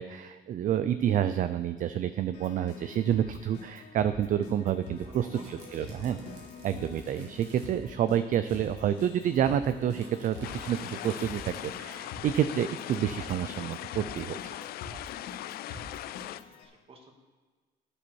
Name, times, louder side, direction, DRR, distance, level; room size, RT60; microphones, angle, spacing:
voice 1, 0.0-6.2 6.6-14.6, right 10 dB, 50° right, 12 dB, 0.5 m, -29 dB
Keyboard (musical), 2.3-16.7, left 4 dB, 90° left, 2.3 m, -46 dB
sound 1, 4.8-7.8 8.1-8.2 8.4-12.0, right 3 dB, 85° right, 2.5 m, -53 dB
voice 2, 5.0-6.5 6.8-6.9 12.0-12.1 14.9-17.2, right 2 dB, 35° right, 2 dB, 2.2 m, -54 dB
sound 2, 10.4-16.4, left 14 dB, 65° left, 0.4 m, -40 dB
11.5 x 10.0 x 4.7 m, 1.4 s
cardioid pair, 110°, 17 cm